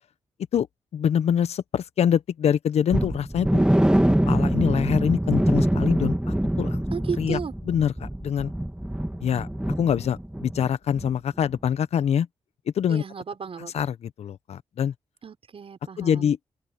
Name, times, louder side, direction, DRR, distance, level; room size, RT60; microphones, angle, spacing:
voice 1, 0.9-3.6 4.3-6.2 6.6-6.8 7.2-8.5 9.2-9.5 9.8-12.3 12.7-13.0 13.6-14.9 16.0-16.4, left 8 dB, 75° left, 1.2 m, -25 dB
sound 1, 2.9-10.7 10.9-11.1 11.5-11.6, right 1 dB, 5° right, 2.5 m, -24 dB
voice 2, 6.9-7.5 12.9-13.8 15.2-16.3, right 6 dB, 60° right, 6.6 m, -34 dB
open air
supercardioid pair, 45°, 11 cm